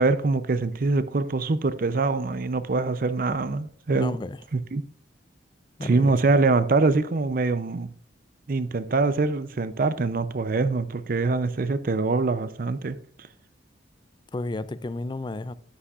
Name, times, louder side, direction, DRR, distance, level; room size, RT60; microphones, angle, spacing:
voice 1, 0.0-4.2 4.5-4.8 5.8-7.9 8.5-13.0, right 3 dB, 50° right, 0.5 m, -24 dB
voice 2, 3.9-4.4 5.8-6.1 14.3-15.5, left 2 dB, 25° left, 0.4 m, -32 dB
9.7 x 8.6 x 2.4 m
head